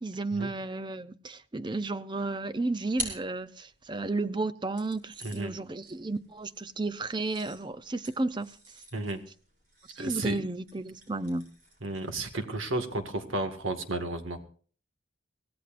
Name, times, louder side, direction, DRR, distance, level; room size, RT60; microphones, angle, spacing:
voice 1, 0.0-8.8 9.9-11.5, right 2 dB, 20° right, 0.6 m, -33 dB
sound 1, 2.3-4.1 4.8-12.4, right 1 dB, 40° right, 6.0 m, -45 dB
voice 2, 5.2-5.5 8.9-9.2 10.0-10.4 11.8-14.4, right 2 dB, 80° right, 1.9 m, -32 dB
24.0 x 17.0 x 2.5 m
head